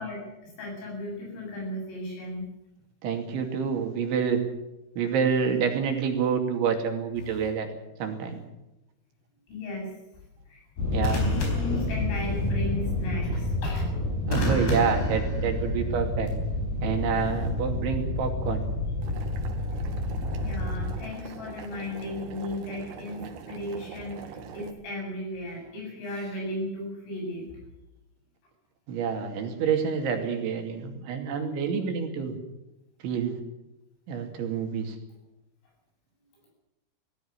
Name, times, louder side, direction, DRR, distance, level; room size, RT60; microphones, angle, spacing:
voice 1, 0.0-2.5 9.5-10.0 10.5-10.6 11.1-13.9 18.1-18.2 20.4-27.6, left 1 dB, 90° left, -1 dB, 11.0 m, -35 dB
voice 2, 3.0-4.4 5.0-7.7 8.0-8.4 10.9-11.2 14.3-16.3 16.8-18.7 28.9-32.4 33.0-33.4 34.1-35.0, right 6 dB, 70° right, 4 dB, 4.8 m, -28 dB
sound 1, 7.2-7.5 11.0-12.5 14.3-16.0 17.2-17.5, left 1 dB, 65° left, 6.5 m, -31 dB
sound 2, 10.8-21.0, left 1 dB, 50° left, 7.1 m, -29 dB
Boiling, 19.0-24.7, right 6 dB, 85° right, 4.6 m, -43 dB
19.0 x 15.5 x 9.6 m, 0.93 s
omnidirectional pair, 5.7 m